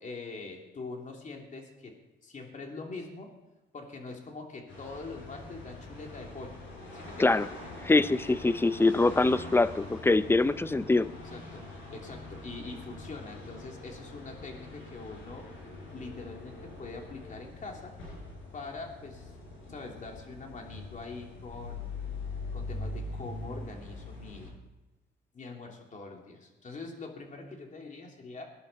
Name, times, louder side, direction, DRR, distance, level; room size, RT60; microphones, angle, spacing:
voice 1, 0.0-3.3 3.7-6.6 6.9-7.4 11.2-15.5 15.9-17.9 18.5-19.3 19.7-22.0 22.5-24.5 25.3-28.4, left 3 dB, 40° left, 1 dB, 2.9 m, -43 dB
sound 1, 4.7-24.5, left 2 dB, 85° left, 6.4 m, -43 dB
voice 2, 7.8-11.1, left 3 dB, 10° left, 15 dB, 0.5 m, -24 dB
20.5 x 11.0 x 4.2 m, 1.1 s
cardioid pair, 90°, 20 cm